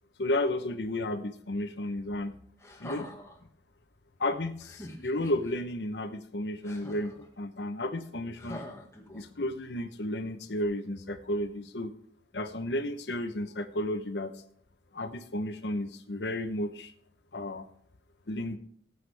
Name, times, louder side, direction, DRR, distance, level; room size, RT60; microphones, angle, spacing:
voice 1, 0.2-2.4 2.8-3.1 4.2-8.7 9.1-11.9 12.3-14.4 14.9-16.9 17.3-17.7 18.3-18.6, left 1 dB, 70° left, 9 dB, 0.9 m, -33 dB
sound 1, 2.6-3.4 4.6-5.5 6.6-7.3 8.4-9.5 10.6-10.7, left 1 dB, 15° left, 1.8 m, -45 dB
18.0 x 7.9 x 3.4 m, 0.63 s
head